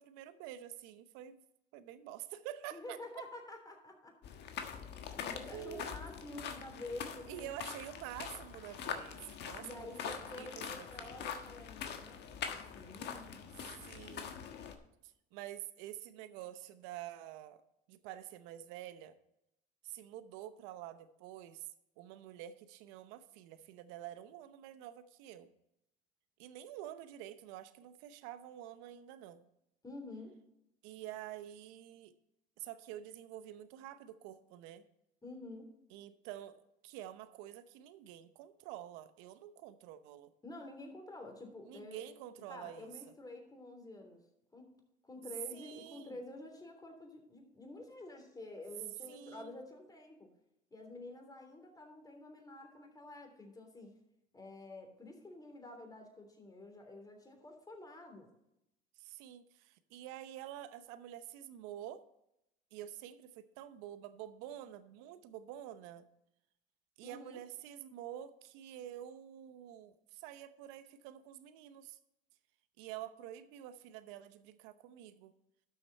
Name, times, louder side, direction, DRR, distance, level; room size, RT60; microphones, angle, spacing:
voice 1, 0.0-1.4 1.7-3.2 5.5-6.0 7.3-11.2 13.7-14.3 15.0-17.6 17.9-19.1 19.8-21.7 22.0-25.5 26.4-29.4 30.8-32.1 32.6-34.8 35.9-40.3 41.7-42.9 45.5-46.2 49.1-49.6 59.0-62.0 62.7-66.1 67.0-72.0 72.8-75.3, right 12 dB, 75° right, 13 dB, 0.9 m, -48 dB
voice 2, 2.7-4.2 5.1-7.7 9.6-12.2 12.5-13.5 29.8-30.4 35.2-35.7 40.4-42.0 42.5-44.2 44.5-44.7 45.0-50.3 50.7-53.9 54.3-58.3 67.0-67.4, left 2 dB, 20° left, 3 dB, 3.2 m, -49 dB
sound 1, 4.2-14.8, left 7 dB, 55° left, 1.4 m, -44 dB
12.0 x 6.6 x 4.2 m, 0.83 s
supercardioid pair, 80°, 20 cm